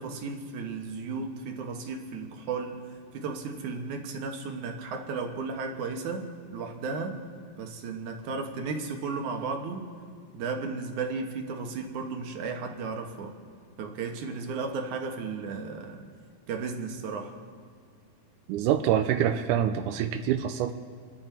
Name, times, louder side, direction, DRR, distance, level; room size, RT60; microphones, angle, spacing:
voice 1, 0.0-2.8 3.1-6.3 6.5-7.2 7.6-9.9 10.3-13.3 13.8-16.1 16.5-17.3, right 4 dB, 65° right, 3 dB, 2.5 m, -34 dB
voice 2, 18.5-20.7, right 10 dB, 80° right, 7 dB, 1.8 m, -25 dB
29.0 x 11.0 x 4.5 m, 2.1 s
omnidirectional pair, 4.2 m